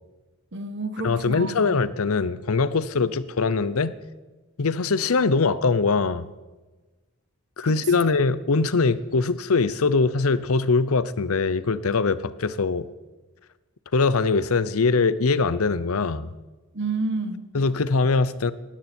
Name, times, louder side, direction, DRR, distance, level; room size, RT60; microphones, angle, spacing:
voice 1, 0.5-1.8 7.6-8.1 16.7-17.5, right 3 dB, 55° right, 10 dB, 1.3 m, -30 dB
voice 2, 1.0-4.0 4.6-6.3 7.6-12.9 13.9-16.3 17.5-18.5, left 4 dB, 75° left, 16 dB, 0.7 m, -22 dB
18.5 x 13.5 x 4.4 m, 1.2 s
head